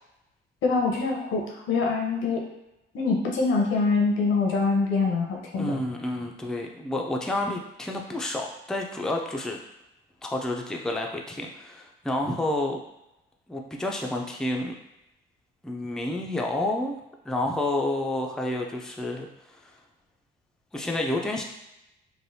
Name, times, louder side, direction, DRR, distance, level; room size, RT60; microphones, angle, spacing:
voice 1, 0.6-2.4 2.9-5.7, left 4 dB, 85° left, 0 dB, 0.7 m, -24 dB
voice 2, 5.6-9.6 10.2-12.8 13.5-14.7 15.6-17.0 17.3-19.3 20.7-21.4, left 1 dB, 5° left, 1 dB, 0.4 m, -29 dB
3.2 x 2.1 x 2.7 m, 0.90 s
cardioid pair, 90°, 20 cm